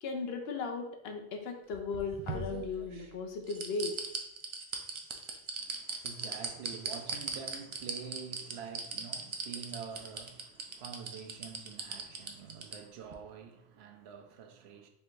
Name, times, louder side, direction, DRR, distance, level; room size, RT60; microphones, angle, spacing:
voice 1, 0.0-3.9, left 4 dB, 70° left, 0.9 m, -37 dB
sound 1, 1.7-3.0 3.5-12.8 13.1-13.2, right 4 dB, 50° right, 0.3 m, -38 dB
voice 2, 5.6-14.9, right 7 dB, 80° right, 0.8 m, -47 dB
3.4 x 2.5 x 4.4 m
omnidirectional pair, 1.1 m